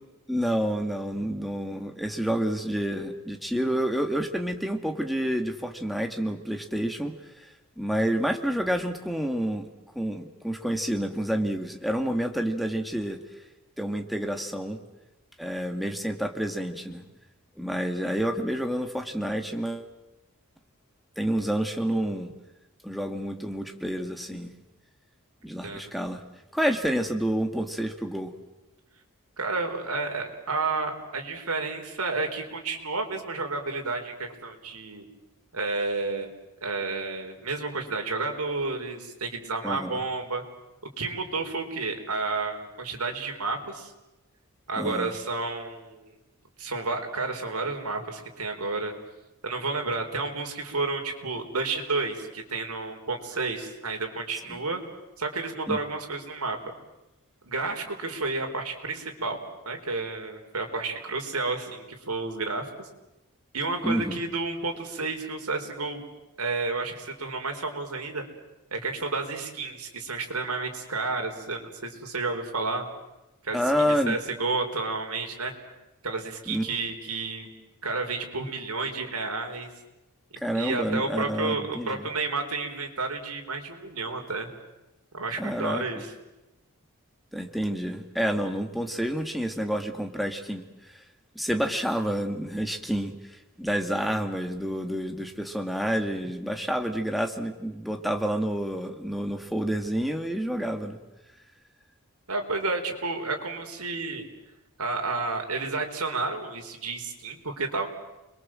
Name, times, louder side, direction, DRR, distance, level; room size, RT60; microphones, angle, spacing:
voice 1, 0.3-7.1 7.4-9.7 9.9-13.2 13.8-14.8 15.4-17.0 17.6-19.9 21.2-22.3 22.8-24.5 25.4-26.2 26.5-28.3 39.6-40.0 44.8-45.1 54.5-54.6 55.7-55.8 63.8-64.2 73.5-74.2 76.5-76.7 80.4-82.0 85.4-85.8 87.3-90.6 90.9-91.0 91.4-101.0, equal, ahead, 5 dB, 2.1 m, -29 dB
voice 2, 29.4-35.1 35.5-36.3 36.6-40.4 41.0-43.9 44.7-46.1 46.6-48.9 49.4-54.8 55.2-56.7 57.4-62.9 63.5-66.0 66.4-68.2 68.7-72.8 73.4-73.6 73.9-75.5 76.0-77.5 77.8-79.7 80.3-84.5 85.1-86.1 102.3-104.2 104.8-107.9, right 3 dB, 80° right, 3 dB, 4.4 m, -31 dB
30.0 x 22.5 x 7.7 m, 1.0 s
head